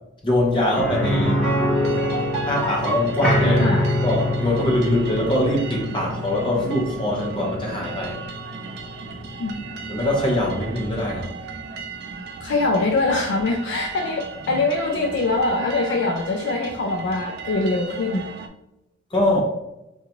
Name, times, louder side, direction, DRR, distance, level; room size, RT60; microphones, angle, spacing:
voice 1, 0.2-1.5 2.5-3.6 4.0-8.2 9.9-11.3 14.5-14.6 19.1-19.4, left 1 dB, 25° left, -2 dB, 0.8 m, -22 dB
sound 1, 0.7-10.5 10.8-10.9 13.4-13.5, left 1 dB, 5° left, 1.2 m, -25 dB
sound 2, 1.7-18.5, right 5 dB, 50° right, 0.3 m, -37 dB
voice 2, 3.4-3.9 9.4-9.6 12.4-18.2, left 2 dB, 55° left, 2 dB, 0.3 m, -23 dB
3.8 x 2.5 x 2.9 m, 0.91 s
head